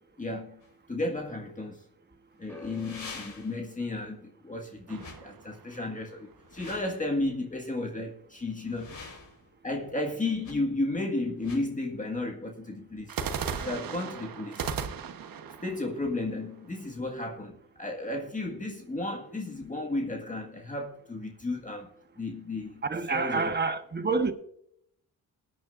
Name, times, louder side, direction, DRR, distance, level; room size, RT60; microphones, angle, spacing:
voice 1, 0.2-0.6 0.9-1.8 2.4-9.0 9.6-13.2 13.5-14.7 15.6-22.8 23.1-23.5, left 2 dB, 20° left, 1.8 m, -33 dB
sound 1, 0.6-0.7 2.5-3.7 4.9-5.2 6.4-6.9 8.5-9.5 10.4-10.5 11.4-11.6, left 4 dB, 55° left, 5.4 m, -45 dB
sound 2, 2.5-8.8 9.0-9.7 10.4-10.5, left 2 dB, 5° left, 3.5 m, -56 dB
sound 3, 4.9-6.3 13.1-17.0, right 6 dB, 65° right, 1.3 m, -37 dB
voice 2, 22.8-24.3, right 4 dB, 30° right, 1.3 m, -28 dB
19.5 x 9.8 x 2.6 m
cardioid pair, 105°, 37 cm